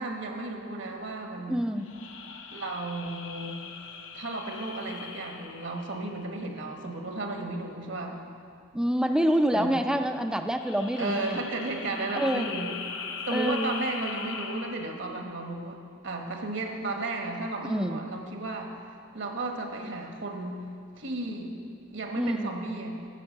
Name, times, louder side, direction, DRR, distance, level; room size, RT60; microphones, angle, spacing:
voice 1, 0.0-1.6 2.5-3.6 4.1-8.1 9.5-9.8 11.0-12.8 13.3-18.7 19.1-20.6 21.0-21.5 21.9-23.0, right 2 dB, 65° right, 2 dB, 1.3 m, -34 dB
voice 2, 1.5-1.9 8.7-11.4 12.1-12.5 13.3-13.6 17.6-18.0 22.2-22.5, equal, 5° right, 7 dB, 0.4 m, -27 dB
sound 1, 1.8-6.6 10.4-15.1, left 6 dB, 70° left, 0.7 m, -40 dB
9.9 x 7.9 x 6.7 m, 2.3 s
head